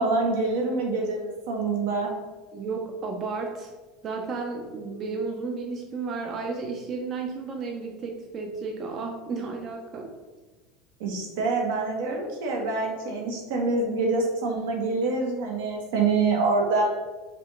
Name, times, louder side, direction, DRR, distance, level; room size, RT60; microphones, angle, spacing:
voice 1, 0.0-2.1 11.0-16.8, right 3 dB, 80° right, 1 dB, 0.9 m, -26 dB
voice 2, 2.5-3.7 4.0-10.2, right 4 dB, 30° right, 2 dB, 0.4 m, -33 dB
5.0 x 2.4 x 3.0 m, 1.2 s
cardioid pair, 160°, 0 cm